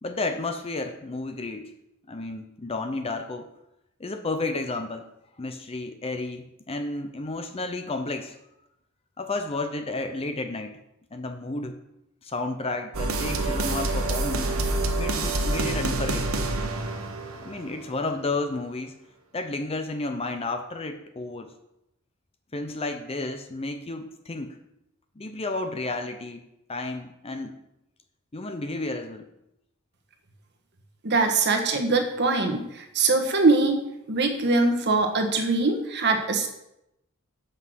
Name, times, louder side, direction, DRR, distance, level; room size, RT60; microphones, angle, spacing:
voice 1, 0.0-1.7 2.1-3.5 4.0-5.1 5.4-8.4 9.2-10.8 11.1-11.8 12.2-14.6 15.0-16.5 17.4-18.9 19.3-21.5 22.5-24.6 25.2-26.4 26.7-27.5 28.3-29.3, left 2 dB, 30° left, 6 dB, 0.7 m, -32 dB
sound 1, 12.9-17.9, right 2 dB, 90° right, 1.2 m, -27 dB
voice 2, 31.0-33.8 34.1-36.5, right 3 dB, 55° right, 4 dB, 1.4 m, -22 dB
8.0 x 5.6 x 6.2 m, 0.84 s
head